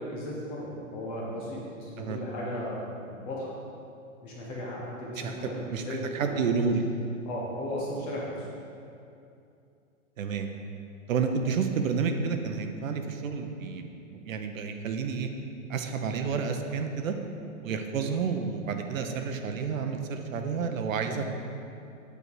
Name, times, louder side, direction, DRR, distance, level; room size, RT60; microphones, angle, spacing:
voice 1, 0.0-3.5 4.2-6.5 7.3-8.5, left 1 dB, 15° left, -5 dB, 0.5 m, -36 dB
voice 2, 6.1-6.8 10.2-10.5 11.1-15.3 15.7-17.2 17.6-21.2, right 5 dB, 70° right, 5 dB, 0.9 m, -30 dB
8.2 x 3.6 x 6.2 m, 2.6 s
hypercardioid pair, 155°, 41 cm